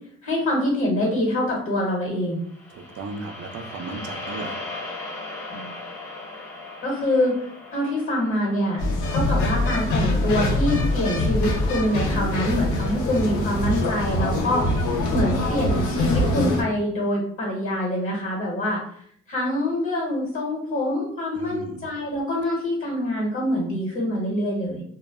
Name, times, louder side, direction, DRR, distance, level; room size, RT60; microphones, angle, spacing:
voice 1, 0.2-2.4 5.5-5.7 6.8-7.4 7.7-8.8 9.1-14.8 15.1-18.8 19.3-24.8, left 1 dB, 45° left, -3 dB, 1.1 m, -25 dB
sound 1, 2.4-10.7, left 2 dB, 10° left, 0.6 m, -38 dB
voice 2, 2.7-4.5 21.3-21.8, right 3 dB, 55° right, 5 dB, 0.5 m, -35 dB
sound 2, 8.8-16.6, left 1 dB, 75° left, 0.7 m, -23 dB
2.2 x 2.0 x 3.4 m, 0.63 s
cardioid pair, 90°, 30 cm